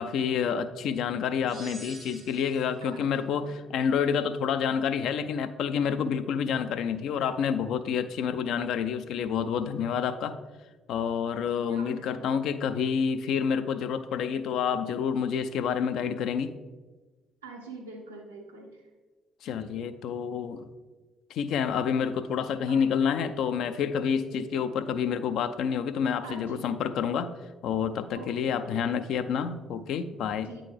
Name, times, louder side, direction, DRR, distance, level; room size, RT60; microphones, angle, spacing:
voice 1, 0.0-10.3 10.9-16.5 19.4-20.7 21.3-27.3 27.6-30.5, left 7 dB, 60° left, 10 dB, 0.3 m, -28 dB
sound 1, 1.5-2.8, right 3 dB, 30° right, 0.5 m, -47 dB
voice 2, 2.8-3.4 11.3-12.4 17.4-18.9 22.7-22.8 26.2-26.7 28.1-28.8 30.4-30.6, right 2 dB, 85° right, -1 dB, 0.7 m, -45 dB
8.7 x 3.8 x 3.3 m, 1.3 s
figure-of-eight pair, 45°, 0 cm